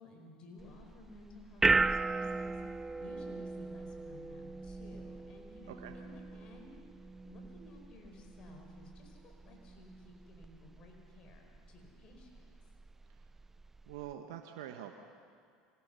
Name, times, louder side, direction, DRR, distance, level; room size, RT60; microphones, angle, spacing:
voice 1, 0.0-6.8 7.2-12.4, left 2 dB, 45° left, 3 dB, 4.8 m, -55 dB
sound 1, 0.6-14.1, right 3 dB, 15° right, 0.4 m, -37 dB
voice 2, 13.8-14.9, right 11 dB, 75° right, 4 dB, 1.3 m, -45 dB
25.5 x 17.5 x 6.9 m, 2.2 s
hypercardioid pair, 90°, 2 cm